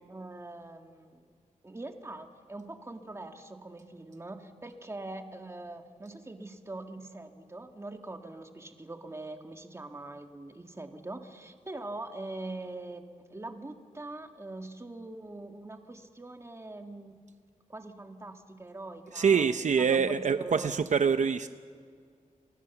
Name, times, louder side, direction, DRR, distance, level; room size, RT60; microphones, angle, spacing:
voice 1, 0.1-1.3 1.6-17.2 17.7-20.7, right 2 dB, 20° right, 5 dB, 1.8 m, -43 dB
voice 2, 19.1-21.5, right 6 dB, 65° right, 10 dB, 0.7 m, -25 dB
29.5 x 24.5 x 7.1 m, 2.1 s
wide cardioid pair, 140°, 14 cm